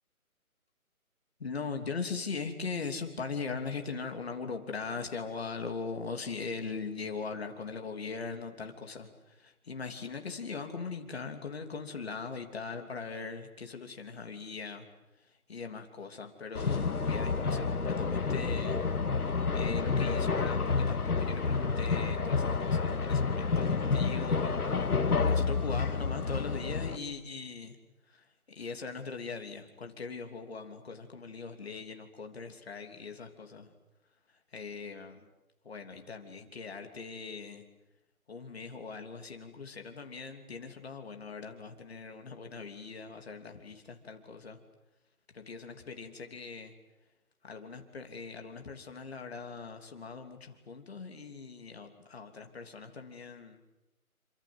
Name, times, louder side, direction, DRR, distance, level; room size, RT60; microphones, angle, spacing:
voice 1, 1.4-14.9 15.2-18.8 19.5-24.7 25.3-27.8 28.1-33.7 34.5-35.3 35.6-37.6 38.3-44.6 45.3-46.7 47.4-53.6, left 4 dB, 45° left, 5 dB, 3.2 m, -40 dB
sound 1, 16.5-27.0, left 4 dB, 90° left, 2.1 m, -29 dB
28.5 x 25.0 x 7.9 m, 0.98 s
hypercardioid pair, 170°, 44 cm